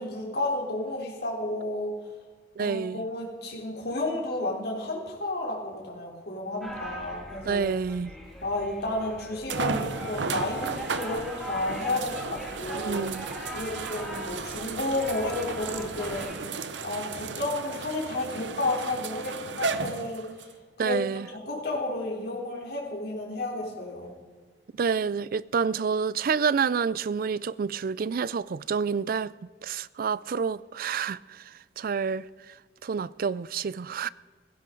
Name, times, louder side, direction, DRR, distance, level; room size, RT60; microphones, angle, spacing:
voice 1, 0.0-1.9 2.6-7.7 8.4-13.1 13.5-16.3 16.8-20.5 20.8-24.1, left 2 dB, 60° left, 3.6 m, -32 dB
voice 2, 2.6-3.0 7.5-8.1 12.7-13.3 20.8-21.3 24.8-29.3 29.6-31.4 31.8-32.3 32.8-34.1, right 6 dB, 55° right, 0.4 m, -28 dB
sound 1, 6.6-16.4, right 1 dB, ahead, 2.8 m, -40 dB
sound 2, 8.4-8.5 9.5-20.5 21.3-21.4 24.8-24.9, right 4 dB, 85° right, 0.8 m, -34 dB
17.0 x 15.5 x 3.9 m
head